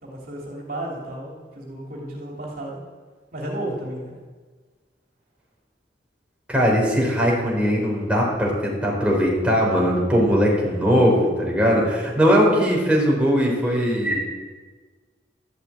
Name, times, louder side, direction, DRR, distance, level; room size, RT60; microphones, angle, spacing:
voice 1, 0.0-2.8 3.3-4.2, right 1 dB, 55° right, -3 dB, 3.1 m, -33 dB
voice 2, 6.5-14.2, equal, 5° right, -3 dB, 4.0 m, -20 dB
13.0 x 8.2 x 8.7 m, 1.4 s
head